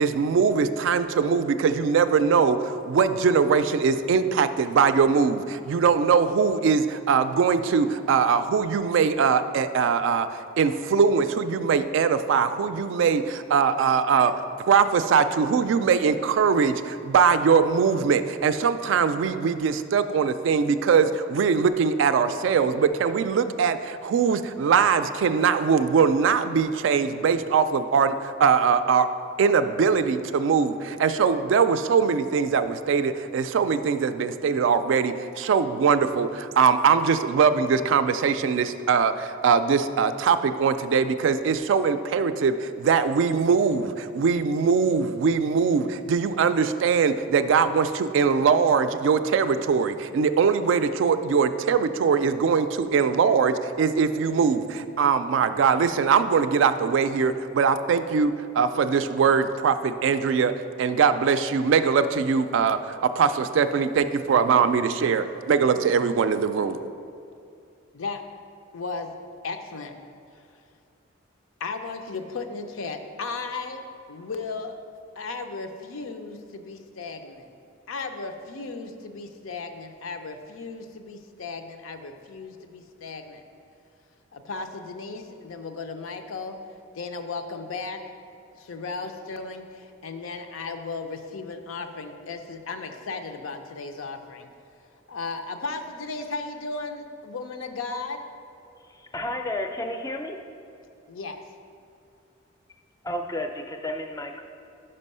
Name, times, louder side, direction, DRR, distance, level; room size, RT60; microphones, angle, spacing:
voice 1, 0.0-14.3 14.7-29.1 29.4-60.5 60.8-66.8, right 6 dB, 65° right, 11 dB, 0.3 m, -22 dB
voice 2, 68.7-69.1 69.4-69.9 71.6-73.8 74.1-74.8 75.2-77.5 77.9-83.4 84.3-86.6 86.9-88.0 88.5-94.5 95.1-98.2 101.1-101.4, left 4 dB, 85° left, 6 dB, 0.5 m, -35 dB
voice 3, 98.8-100.4 103.0-104.4, left 1 dB, 15° left, 5 dB, 0.4 m, -32 dB
5.4 x 5.3 x 5.4 m, 2.6 s
head